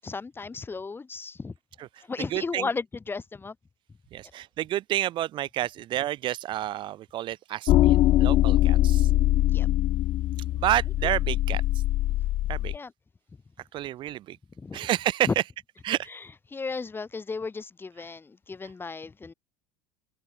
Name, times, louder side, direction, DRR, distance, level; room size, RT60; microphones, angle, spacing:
voice 1, 0.0-1.5 2.0-3.6 9.5-9.7 11.0-11.1 12.7-12.9 14.6-14.8 15.3-15.4 16.1-19.3, left 4 dB, 15° left, 7.7 m, -34 dB
voice 2, 2.2-2.7 4.1-9.1 10.5-11.6 12.5-12.7 13.7-14.4 14.7-15.5 15.8-16.1 18.0-18.1, right 13 dB, 40° right, 1.2 m, -29 dB
sound 1, 7.7-12.8, left 15 dB, 35° left, 0.4 m, -22 dB
figure-of-eight pair, 75°, 12 cm